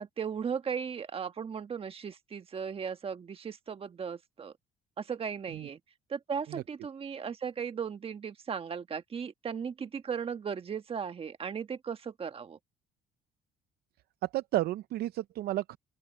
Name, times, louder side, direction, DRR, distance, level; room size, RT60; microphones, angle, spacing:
voice 1, 0.0-4.5 5.0-5.8 6.1-12.6, right 6 dB, 35° right, 1.4 m, -36 dB
voice 2, 14.2-15.8, right 15 dB, 70° right, 0.5 m, -32 dB
open air
cardioid pair, 110°, 17 cm